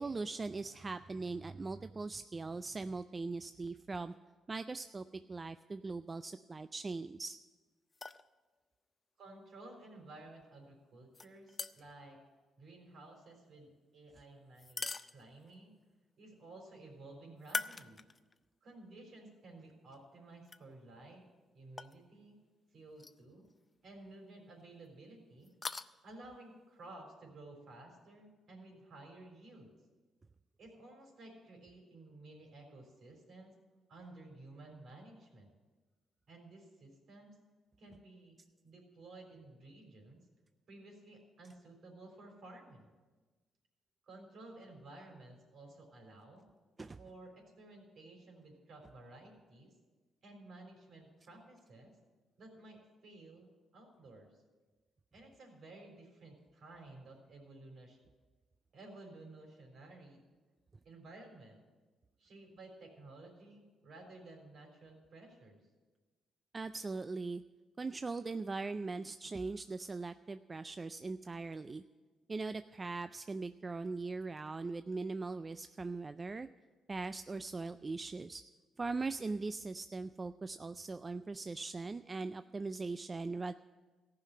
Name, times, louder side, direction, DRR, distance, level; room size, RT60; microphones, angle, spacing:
voice 1, 0.0-4.1 4.5-7.4 46.8-47.0 66.5-67.4 67.8-71.8 72.3-76.5 76.9-78.4 78.8-83.5, right 3 dB, 30° right, 11 dB, 0.3 m, -40 dB
sound 1, 7.9-8.3 11.1-12.0 14.6-15.6 17.4-18.4 18.9-19.0 20.5-20.6 21.8-22.0 23.0-23.2 23.5-23.6 25.4-25.9, left 3 dB, 30° left, 0.5 m, -42 dB
voice 2, 9.2-12.2 12.6-15.7 16.2-18.0 18.6-21.3 21.5-22.4 22.7-23.4 23.8-25.5 26.0-29.7 30.6-33.5 33.9-35.5 36.3-37.4 37.8-38.4 38.6-40.2 40.7-42.9 44.1-46.4 47.0-49.7 50.2-51.9 52.4-54.4 55.1-58.0 58.7-60.2 60.8-61.6 62.2-65.6, right 2 dB, 60° right, 1 dB, 3.9 m, -54 dB
14.5 x 5.7 x 9.3 m, 1.3 s
cardioid pair, 90°, 0 cm